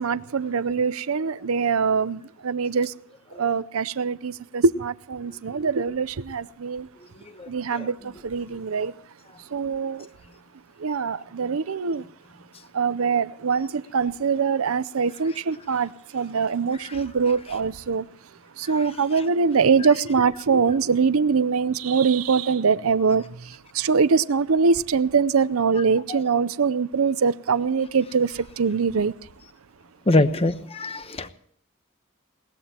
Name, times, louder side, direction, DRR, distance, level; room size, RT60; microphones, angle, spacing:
voice 1, 0.0-2.9 3.4-6.9 7.5-8.9 9.5-10.1 10.8-12.0 12.7-18.1 18.6-29.1, right 5 dB, 85° right, 0.6 m, -23 dB
voice 2, 30.1-31.3, left 2 dB, 30° left, 0.9 m, -22 dB
21.5 x 18.5 x 2.9 m
head